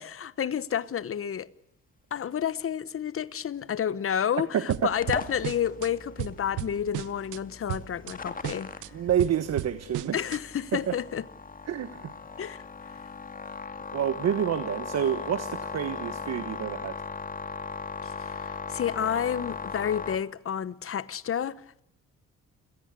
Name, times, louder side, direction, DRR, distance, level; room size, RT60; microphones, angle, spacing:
voice 1, 0.2-1.5 2.1-8.7 10.1-11.3 12.4-12.6 18.0-21.6, left 9 dB, 45° left, 1.1 m, -30 dB
voice 2, 4.5-4.9 8.9-10.2 10.7-10.9 11.7-12.1 13.9-16.9, right 9 dB, 60° right, 1.4 m, -28 dB
sound 1, 4.7-5.9 6.2-7.4 7.7-8.1 8.4-10.4, right 16 dB, 90° right, 0.9 m, -35 dB
sound 2, 5.0-20.2, left 4 dB, 30° left, 2.3 m, -38 dB
29.0 x 17.0 x 9.8 m
cardioid pair, 90°, 30 cm